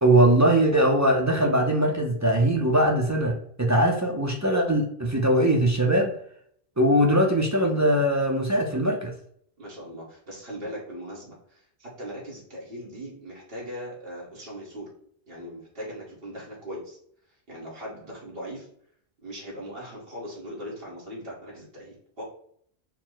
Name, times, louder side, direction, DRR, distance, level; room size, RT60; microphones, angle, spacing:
voice 1, 0.0-6.1 6.8-9.1, right 1 dB, 25° right, 0 dB, 0.3 m, -21 dB
voice 2, 9.6-14.9 15.3-17.0 17.5-18.7 19.2-22.2, equal, 60° right, -5 dB, 1.7 m, -39 dB
4.6 x 2.1 x 3.8 m, 0.64 s
omnidirectional pair, 1.1 m